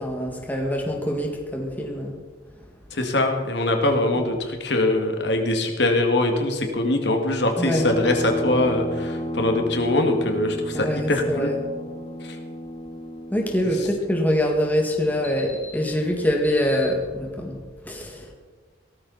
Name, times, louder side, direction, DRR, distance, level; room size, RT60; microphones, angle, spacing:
voice 1, 0.0-2.1 4.2-4.3 7.6-7.9 10.7-11.6 13.3-18.3, equal, 10° left, 1 dB, 1.9 m, -25 dB
voice 2, 2.9-11.5 12.2-12.4 13.8-13.9, left 1 dB, 65° left, 4 dB, 2.1 m, -23 dB
sound 1, 7.8-13.5, left 1 dB, 25° left, 1.2 m, -32 dB
17.5 x 13.5 x 4.2 m, 1.5 s
head